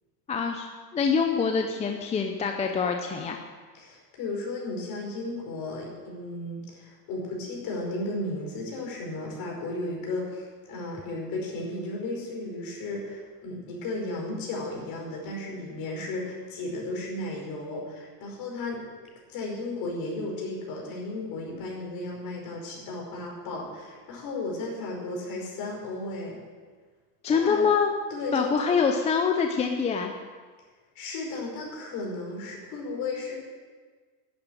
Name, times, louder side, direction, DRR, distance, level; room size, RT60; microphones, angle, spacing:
voice 1, 0.3-0.7 0.9-3.4 27.2-27.9 28.3-30.1, left 5 dB, 15° left, 4 dB, 0.5 m, -25 dB
voice 2, 3.7-18.9 19.3-26.4 27.3-27.6 28.1-28.8 31.0-33.3, left 2 dB, 45° left, -2 dB, 5.2 m, -34 dB
11.0 x 8.9 x 9.0 m, 1.5 s
supercardioid pair, 150°, 48 cm